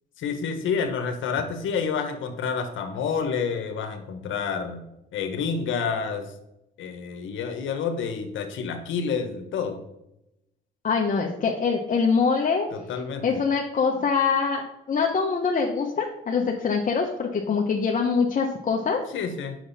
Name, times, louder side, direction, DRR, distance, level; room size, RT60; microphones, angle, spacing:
voice 1, 0.2-4.8 5.1-6.3 6.8-9.8 12.7-13.2 19.1-19.6, left 6 dB, 80° left, 6 dB, 1.2 m, -29 dB
voice 2, 10.8-12.7 13.2-14.6 14.9-19.0, left 5 dB, 40° left, 0 dB, 1.1 m, -24 dB
7.8 x 6.1 x 4.2 m, 0.86 s
cardioid pair, 90°, 20 cm